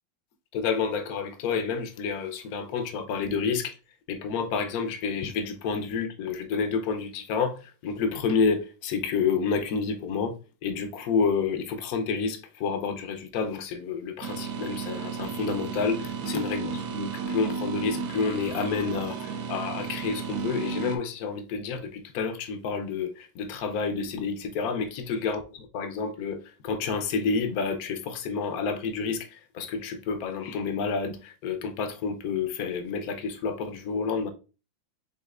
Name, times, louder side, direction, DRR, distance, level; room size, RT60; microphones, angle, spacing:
voice 1, 0.5-3.7 4.1-10.3 10.6-25.4 25.7-34.3, left 5 dB, 65° left, 1.0 m, -29 dB
sound 1, 14.2-21.0, right 6 dB, 70° right, 0.9 m, -33 dB
5.4 x 3.7 x 2.4 m
omnidirectional pair, 2.1 m